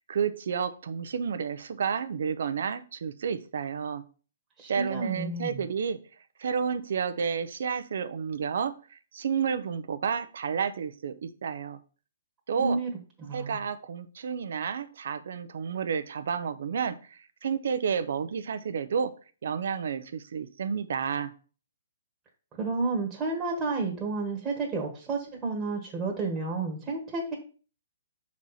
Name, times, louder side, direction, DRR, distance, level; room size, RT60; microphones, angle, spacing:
voice 1, 0.0-4.0 4.7-6.0 6.4-11.8 12.5-12.8 13.3-19.1 19.4-21.3, right 6 dB, 70° right, 12 dB, 0.7 m, -31 dB
voice 2, 4.6-5.6 12.6-12.9 13.2-13.6 22.6-27.3, right 3 dB, 20° right, -1 dB, 1.4 m, -31 dB
6.1 x 4.3 x 4.2 m, 0.38 s
hypercardioid pair, 140°, 0 cm